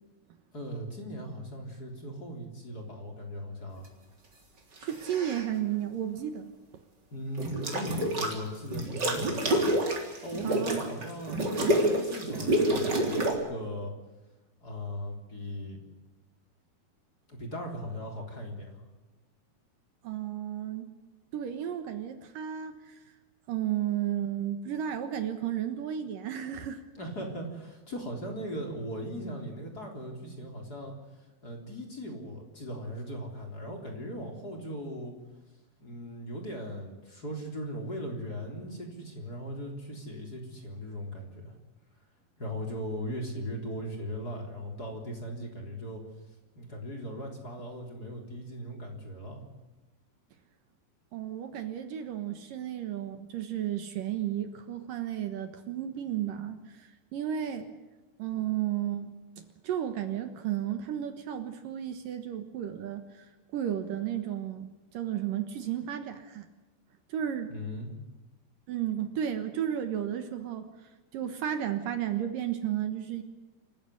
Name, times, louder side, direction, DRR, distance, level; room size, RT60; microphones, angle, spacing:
voice 1, 0.5-3.9 7.1-9.5 10.2-13.9 14.6-15.8 17.3-18.9 27.0-30.9 31.4-35.1 35.8-41.5 42.4-46.0 46.6-49.4 67.5-67.9, equal, 25° left, 2 dB, 3.7 m, -38 dB
sound 1, 4.8-5.5 7.4-8.4 8.7-13.4, right 1 dB, 25° right, 3.8 m, -28 dB
voice 2, 4.8-6.5 10.4-10.9 20.0-20.9 21.3-23.0 23.5-26.8 51.1-57.7 58.2-59.1 59.4-63.3 63.5-66.5 67.1-67.5 68.7-70.7 71.1-73.2, right 10 dB, 65° right, 8 dB, 2.7 m, -33 dB
27.0 x 15.5 x 8.2 m, 1.2 s
omnidirectional pair, 4.5 m